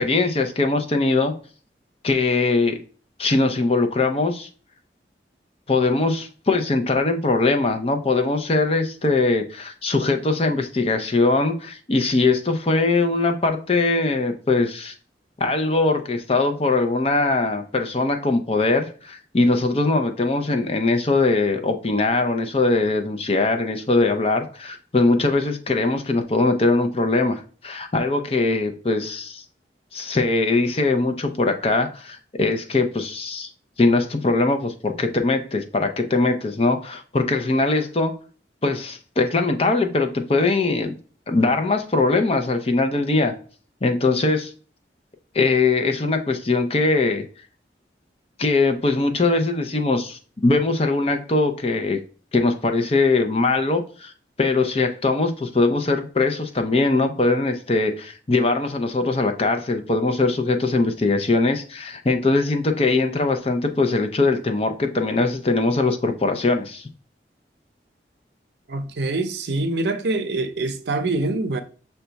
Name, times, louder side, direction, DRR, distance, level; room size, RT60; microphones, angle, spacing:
voice 1, 0.0-1.3 2.0-2.8 3.2-4.5 5.7-14.9 15.4-29.4 29.9-33.5 33.8-38.1 38.6-40.9 41.3-43.3 43.8-44.5 45.3-47.2 48.4-52.0 52.3-54.1 54.4-66.9, left 3 dB, 35° left, 0.5 m, -21 dB
voice 2, 68.7-71.6, right 2 dB, 75° right, 0.5 m, -25 dB
5.8 x 2.2 x 3.9 m
head